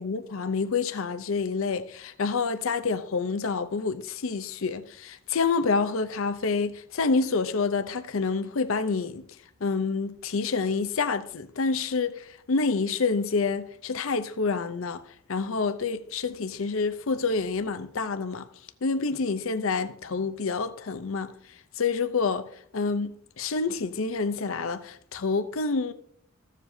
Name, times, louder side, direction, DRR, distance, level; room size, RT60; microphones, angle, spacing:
voice 1, 0.0-9.2 9.6-15.0 15.3-18.4 18.8-21.3 21.8-22.5 22.7-25.9, left 4 dB, 70° left, 0.6 m, -28 dB
15.0 x 7.2 x 2.7 m
head